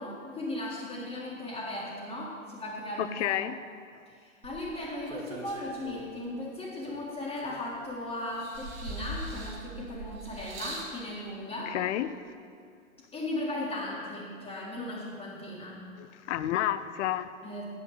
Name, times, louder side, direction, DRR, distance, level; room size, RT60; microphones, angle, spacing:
voice 1, 0.0-3.4 4.1-11.8 13.1-15.9 17.4-17.6, left 1 dB, 15° left, -7 dB, 2.0 m, -37 dB
voice 2, 3.0-3.6 11.7-12.1 16.0-17.3, left 12 dB, 60° left, 14 dB, 0.7 m, -30 dB
sound 1, 4.4-6.3 6.8-7.9 8.3-11.0 11.9-12.0, right 1 dB, 90° right, 2.2 m, -41 dB
9.9 x 7.1 x 7.8 m, 2.3 s
hypercardioid pair, 115°, 40 cm